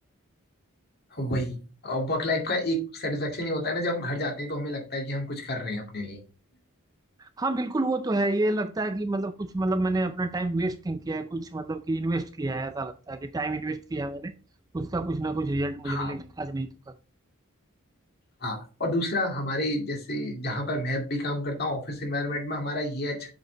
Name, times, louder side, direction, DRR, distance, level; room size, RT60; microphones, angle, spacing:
voice 1, 1.1-1.6 1.8-6.2 15.8-16.1 18.4-23.3, left 1 dB, 45° left, 2.1 m, -29 dB
voice 2, 7.2-14.3 14.7-16.9, right 2 dB, 15° right, 0.3 m, -29 dB
7.5 x 5.2 x 3.7 m
head